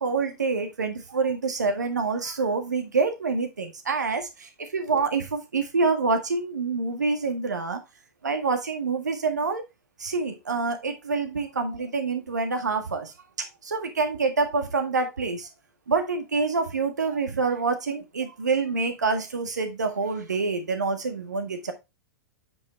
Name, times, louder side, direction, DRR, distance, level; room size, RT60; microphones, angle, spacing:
voice 1, 0.0-4.3 4.7-7.8 8.2-9.6 10.0-13.1 13.4-15.5 15.9-21.7, right 4 dB, 75° right, 7 dB, 1.7 m, -26 dB
8.5 x 5.4 x 3.2 m, 0.23 s
figure-of-eight pair, 100°, 10 cm